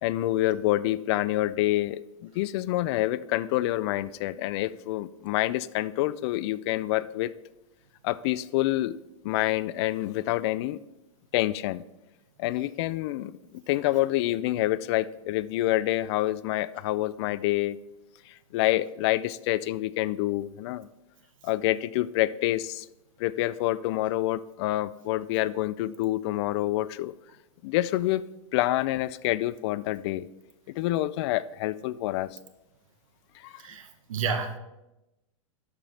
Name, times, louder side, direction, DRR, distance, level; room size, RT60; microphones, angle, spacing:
voice 1, 0.0-7.3 8.0-8.9 9.2-10.8 11.3-11.8 12.4-13.3 13.7-17.8 18.5-20.9 21.4-22.9 23.2-27.1 27.6-28.2 28.5-30.3 30.8-32.3 33.4-33.5, left 15 dB, 55° left, 18 dB, 0.4 m, -27 dB
voice 2, 33.6-34.6, right 5 dB, 80° right, 8 dB, 1.2 m, -31 dB
12.0 x 5.1 x 4.2 m, 0.95 s
hypercardioid pair, 120°, 17 cm